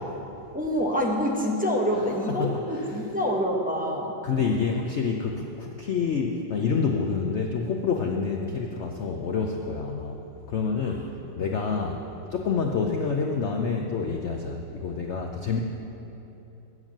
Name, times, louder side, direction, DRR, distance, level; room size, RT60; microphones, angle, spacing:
voice 1, 0.5-4.1 8.1-8.2 11.8-11.9 12.7-12.8, equal, 10° right, -2 dB, 0.4 m, -26 dB
voice 2, 2.3-3.0 4.2-10.2 10.5-11.1 11.4-12.0 12.3-15.6, left 5 dB, 80° left, 2 dB, 0.6 m, -28 dB
9.0 x 7.9 x 7.3 m, 2.9 s
omnidirectional pair, 2.0 m